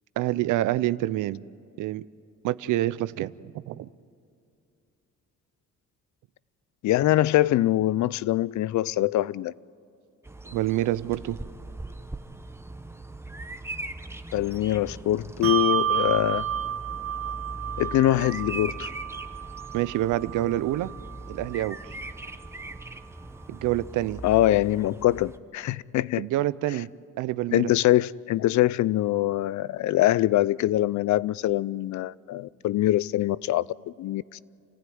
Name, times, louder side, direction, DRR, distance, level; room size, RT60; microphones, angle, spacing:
voice 1, 0.2-1.4 1.8-2.1 2.4-3.9 10.4-11.4 19.7-20.9 21.3-21.9 23.5-24.2 26.2-26.9 27.2-27.8, right 15 dB, 85° right, 0.6 m, -27 dB
voice 2, 6.8-9.5 14.3-16.4 17.8-18.9 24.2-26.2 27.5-34.4, left 14 dB, 70° left, 0.5 m, -23 dB
Bird vocalization bird call bird song, 10.2-25.4, right 2 dB, 10° right, 1.0 m, -40 dB
Bell, 15.4-22.3, right 9 dB, 50° right, 1.2 m, -31 dB
28.0 x 15.5 x 9.4 m
cardioid pair, 90°, 30 cm